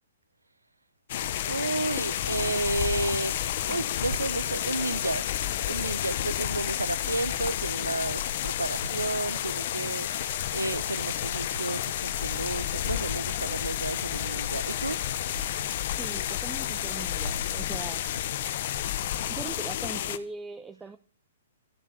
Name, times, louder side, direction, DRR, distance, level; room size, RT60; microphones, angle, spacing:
sound 1, 1.1-20.2, left 11 dB, 50° left, 1.0 m, -31 dB
voice 1, 1.5-5.2 5.6-15.0, right 2 dB, 85° right, 0.9 m, -32 dB
voice 2, 16.0-18.0 19.3-21.0, right 4 dB, 10° right, 0.8 m, -40 dB
14.0 x 7.2 x 8.4 m
figure-of-eight pair, 115°, 0 cm